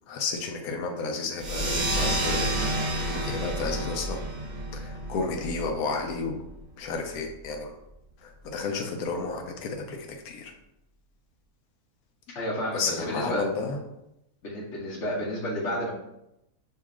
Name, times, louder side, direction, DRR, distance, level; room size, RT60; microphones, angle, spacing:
voice 1, 0.1-2.5 3.1-4.2 4.7-6.4 6.8-7.7 8.2-10.5 12.7-13.8, left 4 dB, 80° left, 3 dB, 1.1 m, -32 dB
sound 1, 1.4-6.5, right 1 dB, 45° right, 0.6 m, -30 dB
voice 2, 12.3-13.4 14.4-15.9, equal, 55° left, -6 dB, 1.1 m, -31 dB
6.6 x 2.8 x 2.4 m, 0.86 s
omnidirectional pair, 1.6 m